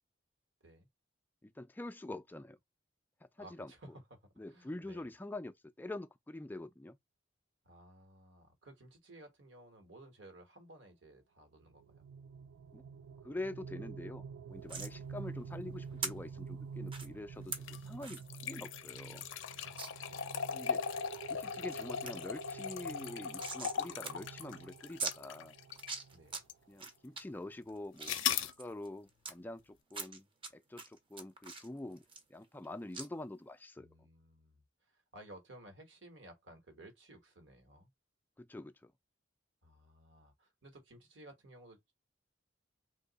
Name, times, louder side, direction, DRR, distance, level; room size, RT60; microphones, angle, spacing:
voice 1, 1.4-2.6 3.4-3.7 4.4-7.0 12.7-12.8 13.2-17.5 17.9-19.2 20.5-20.8 21.3-25.5 26.7-30.3 30.5-32.0 32.3-33.9 38.4-38.9, left 2 dB, 10° left, 0.3 m, -45 dB
voice 2, 3.4-4.2 4.5-5.1 7.6-12.1 18.9-20.4 26.1-26.5 33.8-37.9 39.6-41.9, right 1 dB, 70° right, 1.1 m, -57 dB
sound 1, 11.6-26.3, right 6 dB, 90° right, 0.3 m, -48 dB
sound 2, 14.7-14.9 16.0-16.1 16.9-17.1 17.5-17.6 18.0-18.2 18.6-18.7 19.0-19.1 19.8-19.9 20.4-20.9 21.4-21.8 22.1-22.2 22.4-23.8 24.0-24.1 24.4-24.5 25.0-25.2 25.7-26.4 26.8-27.2 27.7-29.3 29.9-30.5 30.8-32.7 32.9-33.1, right 4 dB, 25° right, 0.6 m, -42 dB
sound 3, 17.5-26.0 26.5-26.6 28.0-28.5, left 8 dB, 75° left, 0.5 m, -39 dB
2.8 x 2.1 x 3.9 m
head